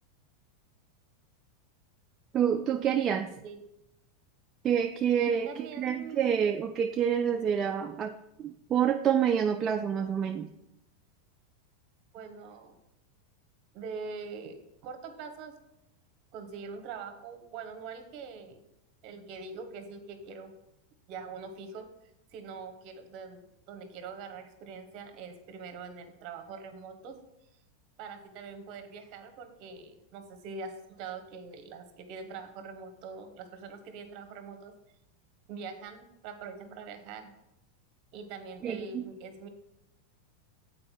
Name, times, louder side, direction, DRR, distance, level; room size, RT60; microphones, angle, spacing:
voice 1, 2.3-3.3 4.6-5.5 5.8-8.1 8.4-10.5 38.6-39.0, right 8 dB, 25° right, 5 dB, 0.3 m, -27 dB
voice 2, 5.1-6.4 12.1-12.7 13.7-15.6 16.3-18.6 19.0-20.5 21.1-21.9 22.3-27.2 28.0-34.7 35.5-37.3 38.1-39.5, right 5 dB, 45° right, 6 dB, 1.1 m, -43 dB
7.5 x 4.4 x 4.5 m, 0.85 s
supercardioid pair, 145°, 0 cm